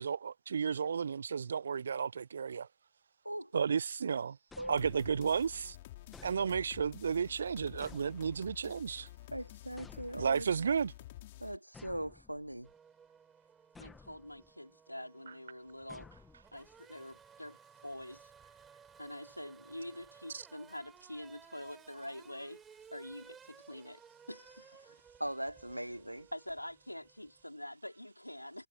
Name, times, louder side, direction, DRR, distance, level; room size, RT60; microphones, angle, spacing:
voice 1, 0.0-2.7 3.5-4.4 4.7-5.8 6.2-9.1 10.1-10.9 20.3-20.4, right 6 dB, 70° right, 0.3 m, -33 dB
sound 1, 4.5-5.4 6.1-7.0 7.8-8.7 9.8-10.6 11.7-12.8 13.8-14.5 15.9-16.8, left 4 dB, 15° left, 2.4 m, -56 dB
sound 2, 4.8-11.6, left 16 dB, 55° left, 4.1 m, -50 dB
voice 2, 9.3-10.7 11.4-12.7 25.2-26.3, right 1 dB, 90° right, 1.1 m, -40 dB
Race car auto racing / Accelerating revving vroom, 12.6-27.4, right 6 dB, 20° right, 4.4 m, -59 dB
voice 3, 13.8-16.1 16.5-18.3 19.0-22.6 22.9-24.0 24.3-25.1 26.3-28.7, left 1 dB, 90° left, 5.0 m, -46 dB
figure-of-eight pair, 90°, 0 cm